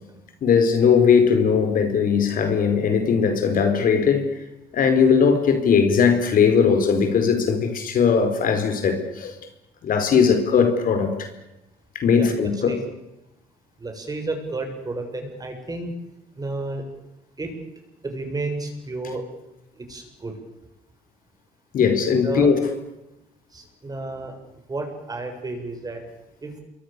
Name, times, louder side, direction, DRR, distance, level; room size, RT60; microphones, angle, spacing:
voice 1, 0.4-4.4 4.7-9.3 9.8-11.3 11.9-12.8 21.7-22.6, left 6 dB, 55° left, 4.7 m, -19 dB
voice 2, 12.2-12.8 13.8-15.9 16.4-16.8 17.4-17.5 18.0-19.2 19.8-20.3 22.2-22.5 23.5-24.3 24.7-26.0 26.4-26.5, right 2 dB, 20° right, 7.2 m, -31 dB
28.0 x 23.5 x 7.0 m
cardioid pair, 110°, 17 cm